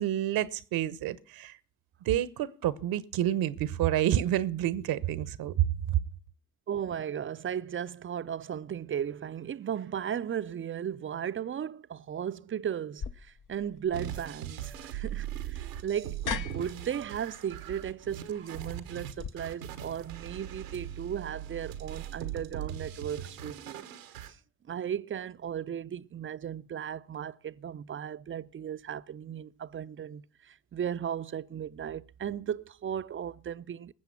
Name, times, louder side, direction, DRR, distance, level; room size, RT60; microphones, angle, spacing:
voice 1, 0.0-1.5 2.1-6.0, right 12 dB, 65° right, 1.0 m, -28 dB
voice 2, 6.7-23.8 24.3-24.4 24.7-33.9, right 9 dB, 30° right, 0.6 m, -36 dB
sound 1, 13.0-19.3, left 7 dB, 50° left, 1.0 m, -42 dB
sound 2, 13.9-24.3, right 11 dB, 90° right, 1.3 m, -40 dB
20.0 x 7.5 x 5.8 m
hypercardioid pair, 50°, 39 cm